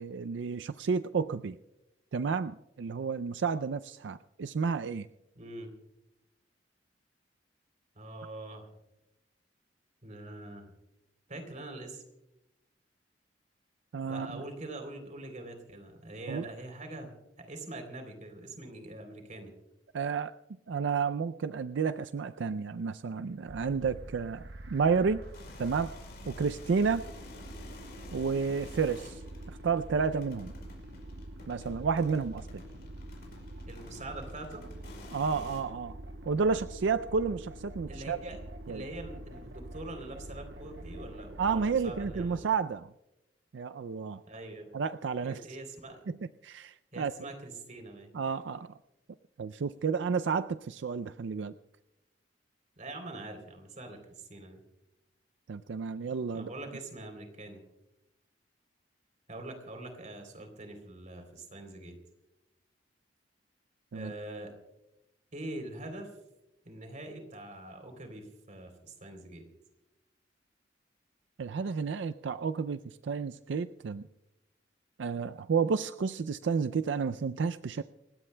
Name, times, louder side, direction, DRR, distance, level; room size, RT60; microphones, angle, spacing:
voice 1, 0.0-1.6 2.1-5.1 13.9-14.4 16.3-16.4 19.9-20.3 20.7-25.2 25.6-25.9 26.3-27.0 28.1-29.2 29.5-30.5 31.5-32.5 35.1-36.0 36.3-38.2 38.7-38.8 41.4-42.9 43.5-44.2 44.7-45.5 46.4-47.1 48.1-48.8 49.4-51.5 55.5-56.5 63.9-64.1 71.4-74.0 75.0-77.8, right 5 dB, 85° right, 12 dB, 0.4 m, -31 dB
voice 2, 5.3-5.7 7.9-8.7 10.0-10.7 11.3-12.0 14.1-17.1 17.4-19.5 33.7-34.7 37.9-38.4 38.7-42.5 44.3-44.7 45.2-46.0 46.9-48.1 52.8-54.6 56.3-57.6 59.3-62.0 63.9-64.5 65.3-66.1 66.6-69.4, right 2 dB, 45° right, 5 dB, 3.3 m, -44 dB
sound 1, 23.5-42.4, right 1 dB, 70° right, 1.2 m, -46 dB
sound 2, 25.2-35.6, left 3 dB, 60° left, 6.0 m, -52 dB
29.0 x 16.0 x 2.2 m, 0.92 s
head